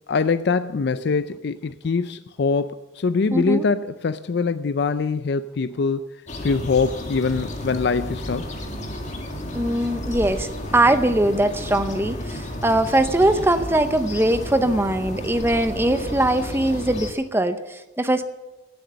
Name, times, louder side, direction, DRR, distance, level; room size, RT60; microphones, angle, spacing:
voice 1, 0.1-6.2 6.4-8.5, left 4 dB, 60° left, 12 dB, 0.4 m, -23 dB
voice 2, 3.3-3.7 9.5-18.3, right 1 dB, 10° right, 10 dB, 0.7 m, -21 dB
sound 1, 6.3-17.1, left 1 dB, 40° left, 1.9 m, -32 dB
16.5 x 7.9 x 7.5 m, 1.1 s
head